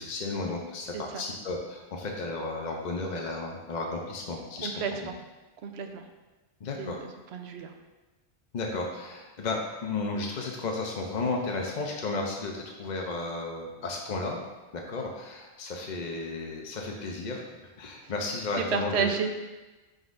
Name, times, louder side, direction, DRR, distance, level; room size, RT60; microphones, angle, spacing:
voice 1, 0.0-4.7 5.0-5.1 6.6-7.0 8.5-14.4 14.7-19.1, left 3 dB, 45° left, 0 dB, 0.7 m, -33 dB
voice 2, 5.6-6.1 6.8-7.0 7.3-7.7 18.6-19.3, right 6 dB, 75° right, 6 dB, 0.9 m, -30 dB
11.0 x 4.0 x 2.6 m, 1.2 s
omnidirectional pair, 1.2 m